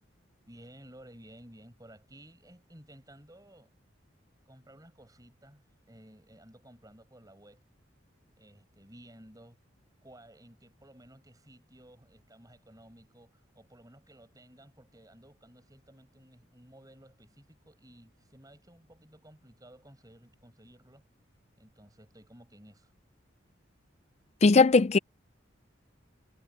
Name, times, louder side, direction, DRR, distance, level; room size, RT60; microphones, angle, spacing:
voice 1, 0.5-3.7 4.4-7.6 8.4-9.6 10.0-21.0 21.6-22.9, right 1 dB, 20° right, 6.7 m, -55 dB
voice 2, 24.4-25.0, left 4 dB, 35° left, 0.4 m, -19 dB
head